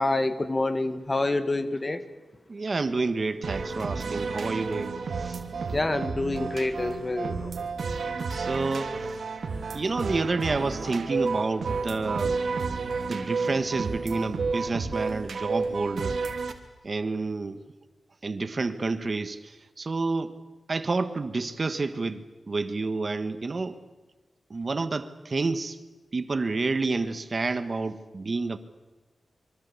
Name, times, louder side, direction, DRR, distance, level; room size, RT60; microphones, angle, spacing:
voice 1, 0.0-2.0 5.7-7.5, left 2 dB, 25° left, 11 dB, 1.8 m, -27 dB
voice 2, 2.5-5.4 8.3-9.2 9.7-12.3 13.1-16.2 16.8-17.6 18.2-20.3 20.7-23.8 24.5-25.8 26.1-28.6, right 3 dB, 40° right, 11 dB, 1.4 m, -29 dB
sound 1, 3.4-16.5, right 4 dB, 70° right, 3.0 m, -31 dB
25.5 x 24.5 x 8.5 m, 1.2 s
wide cardioid pair, 110°, 0 cm